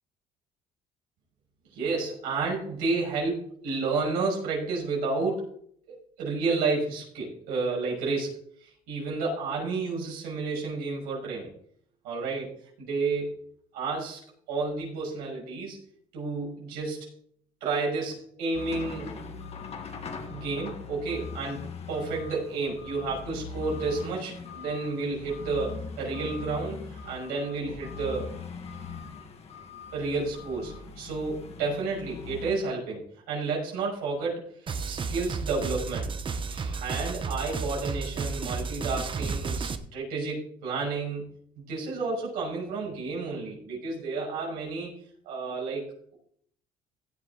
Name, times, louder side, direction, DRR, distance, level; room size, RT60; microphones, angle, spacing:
voice 1, 1.7-5.5 6.2-11.5 12.0-12.5 12.8-13.4 13.7-14.2 14.5-15.8 16.1-17.1 17.6-19.1 20.3-28.3 29.9-34.4 34.9-36.1 36.5-41.3 41.7-44.9 45.2-46.2, right 3 dB, 85° right, -3 dB, 6.0 m, -31 dB
sound 1, 18.5-32.5, left 5 dB, 45° left, 1.8 m, -41 dB
sound 2, 34.7-39.8, right 4 dB, 35° right, 1.0 m, -32 dB
16.0 x 7.1 x 4.1 m, 0.62 s
cardioid pair, 95°, 15 cm